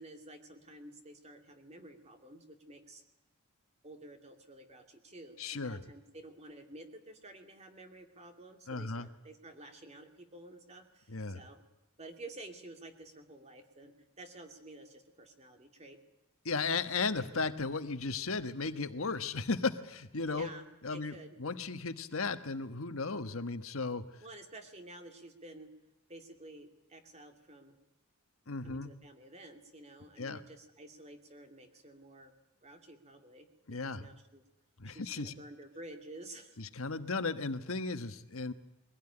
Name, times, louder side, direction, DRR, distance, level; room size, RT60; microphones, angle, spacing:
voice 1, 0.0-3.0 3.8-11.6 12.0-16.0 20.3-20.6 20.9-21.3 24.2-25.7 26.1-27.7 28.6-32.3 32.6-33.5 33.8-34.4 34.8-36.6, right 1 dB, 30° right, 5 dB, 2.5 m, -51 dB
voice 2, 5.4-5.8 8.7-9.1 11.1-11.4 16.4-20.5 20.8-21.1 21.4-24.0 28.5-28.9 30.2-30.4 33.7-34.1 34.8-35.3 36.6-38.5, left 4 dB, 70° left, 9 dB, 1.4 m, -35 dB
23.0 x 16.5 x 9.9 m, 0.98 s
head